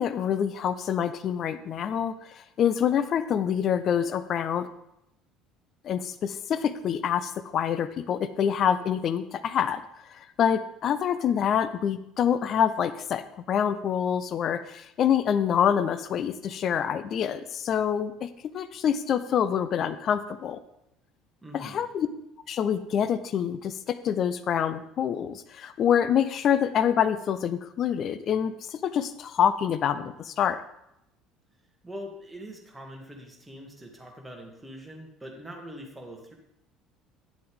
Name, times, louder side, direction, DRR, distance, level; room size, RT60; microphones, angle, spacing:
voice 1, 0.0-4.7 5.8-9.8 10.1-18.3 18.5-20.6 21.5-22.1 22.5-30.6, left 8 dB, 50° left, 12 dB, 0.6 m, -26 dB
voice 2, 21.4-21.9 31.8-36.3, equal, 10° right, 0 dB, 2.3 m, -43 dB
9.5 x 7.7 x 3.6 m, 0.81 s
hypercardioid pair, 60°, 0 cm